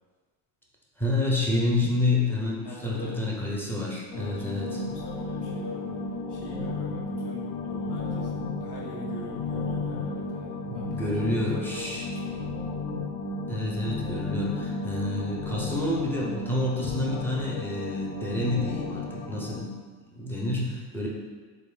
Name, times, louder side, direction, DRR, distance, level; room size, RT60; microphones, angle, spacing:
voice 1, 1.0-4.8 10.6-12.0 13.5-19.7 20.1-21.1, left 2 dB, 5° left, -4 dB, 0.4 m, -28 dB
voice 2, 2.6-3.2 4.1-6.0 6.3-12.5, left 3 dB, 55° left, -4 dB, 1.1 m, -43 dB
sound 1, 4.1-19.6, left 3 dB, 80° left, 0.6 m, -33 dB
3.6 x 2.2 x 3.2 m, 1.4 s
supercardioid pair, 100°, 49 cm